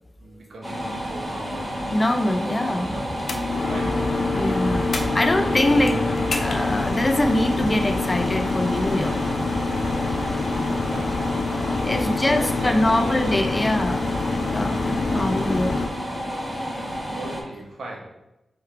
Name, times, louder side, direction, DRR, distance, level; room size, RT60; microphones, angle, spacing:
voice 1, 0.2-1.8 2.5-4.0 10.5-13.4 13.8-14.0 17.1-18.0, right 2 dB, 85° right, -1 dB, 1.0 m, -39 dB
sound 1, 0.6-17.4, equal, 20° right, 1.3 m, -30 dB
voice 2, 1.9-3.1 4.3-6.0 6.4-9.2 11.3-11.4 11.7-15.8, left 1 dB, 25° left, 6 dB, 0.5 m, -24 dB
sound 2, 3.2-15.9, left 3 dB, 75° left, 0.5 m, -26 dB
3.6 x 3.1 x 4.5 m, 0.94 s
wide cardioid pair, 100°, 0 cm